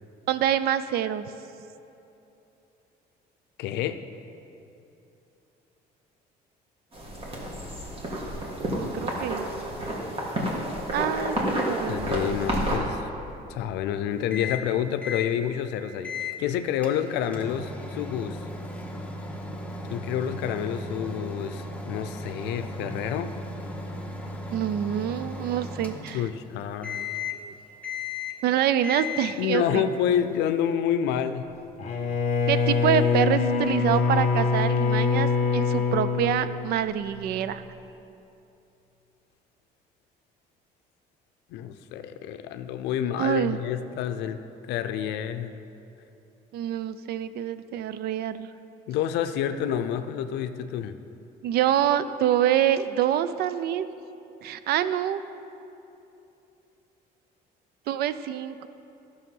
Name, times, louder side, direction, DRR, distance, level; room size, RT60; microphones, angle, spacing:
voice 1, 0.3-1.3 8.7-9.5 10.9-12.1 24.5-26.2 27.3-27.5 28.4-29.9 32.5-37.6 43.2-43.6 46.5-48.5 51.4-53.9 54.4-55.2 57.9-58.7, right 10 dB, 70° right, 13 dB, 0.5 m, -26 dB
voice 2, 3.6-4.0 11.9-13.1 13.5-18.4 19.9-23.3 26.1-27.0 29.4-31.4 41.5-44.4 44.7-45.5 48.9-51.0, left 9 dB, 85° left, 10 dB, 0.5 m, -28 dB
sound 1, 6.9-12.8, right 1 dB, 35° right, 1.9 m, -30 dB
Microwave oven, 14.3-14.7 15.0-15.3 16.0-16.4 16.8-26.5 26.8-27.5 27.8-28.5 28.8-29.5, left 3 dB, 5° left, 1.0 m, -36 dB
Bowed string instrument, 31.8-37.1, left 5 dB, 40° left, 1.1 m, -24 dB
11.5 x 6.4 x 5.4 m, 2.9 s
cardioid pair, 110°, 17 cm